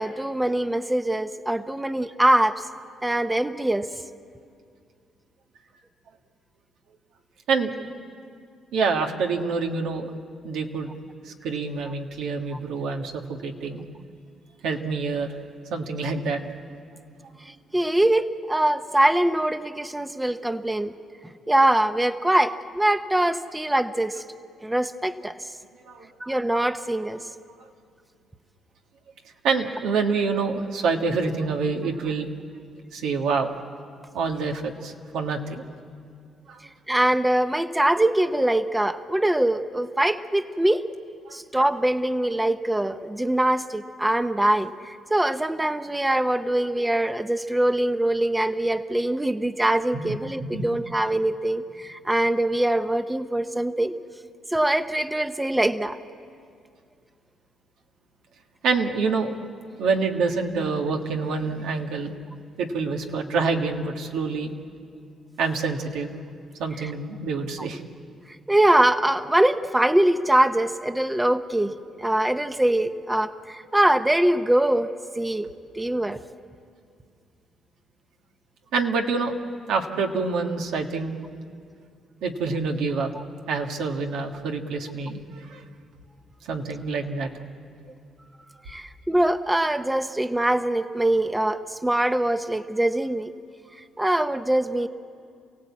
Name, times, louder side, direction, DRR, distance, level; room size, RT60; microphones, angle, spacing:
voice 1, 0.0-2.6 3.0-3.9 17.5-20.9 21.5-24.2 24.6-25.4 26.2-27.2 36.9-40.8 41.3-54.0 54.5-56.0 66.8-66.9 68.5-74.9 75.2-76.2 88.7-93.3 94.0-94.9, right 1 dB, 10° right, 10 dB, 0.8 m, -23 dB
voice 2, 7.5-7.9 8.7-10.1 10.4-10.9 11.3-13.8 14.6-15.3 15.7-16.4 25.9-26.1 29.4-32.3 32.9-33.5 34.1-35.6 36.5-36.6 41.3-41.4 49.9-50.1 50.4-50.7 58.6-59.3 59.8-62.1 62.6-64.5 65.4-66.1 66.6-67.8 78.7-79.3 79.7-81.1 82.2-83.1 83.5-85.6 86.5-87.3, right 4 dB, 85° right, 3 dB, 1.6 m, -26 dB
28.0 x 16.5 x 8.5 m, 2.3 s
cardioid pair, 90°, 0 cm